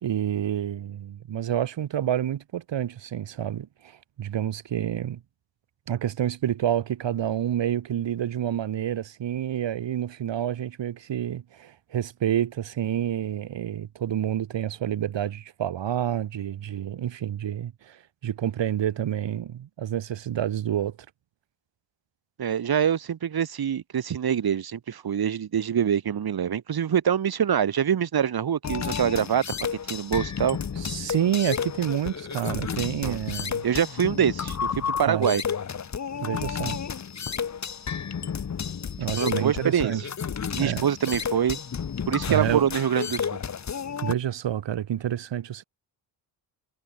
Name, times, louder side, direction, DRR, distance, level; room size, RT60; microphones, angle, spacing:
voice 1, 0.0-5.2 5.9-21.0 30.8-33.6 35.0-35.3 36.2-36.8 39.0-40.0 40.6-41.1 42.3-42.7 44.0-45.6, right 10 dB, 65° right, 3.1 m, -28 dB
voice 2, 22.4-29.4 29.9-30.6 33.0-33.2 33.6-35.4 39.1-39.9 40.5-41.6 42.1-43.3, right 8 dB, 50° right, 2.7 m, -25 dB
sound 1, 28.6-44.1, left 7 dB, 35° left, 1.7 m, -32 dB
wide cardioid pair, 140°, 46 cm